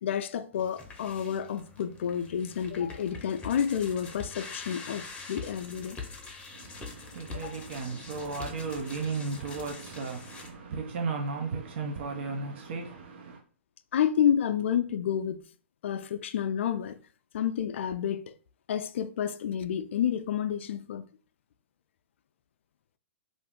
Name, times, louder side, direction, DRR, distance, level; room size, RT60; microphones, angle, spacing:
voice 1, 0.0-6.0 7.4-7.5 13.9-15.4 15.8-17.0 17.3-18.3 18.7-21.1, left 9 dB, 65° left, 0.3 m, -29 dB
sound 1, 0.5-10.5, left 4 dB, 15° left, 0.6 m, -44 dB
voice 2, 6.5-13.4, right 4 dB, 60° right, 0.6 m, -35 dB
2.5 x 2.5 x 3.5 m
hypercardioid pair, 125°, 7 cm